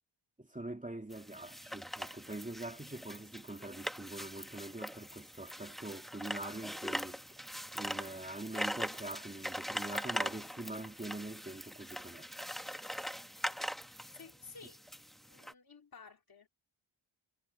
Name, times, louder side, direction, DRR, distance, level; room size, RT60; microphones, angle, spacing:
voice 1, 0.4-7.2 7.7-12.3, right 2 dB, 15° right, 2.7 m, -44 dB
sound 1, 1.1-15.5, equal, ahead, 1.3 m, -42 dB
voice 2, 14.1-14.8 15.2-16.5, left 4 dB, 45° left, 3.0 m, -54 dB
wide cardioid pair, 105°, 48 cm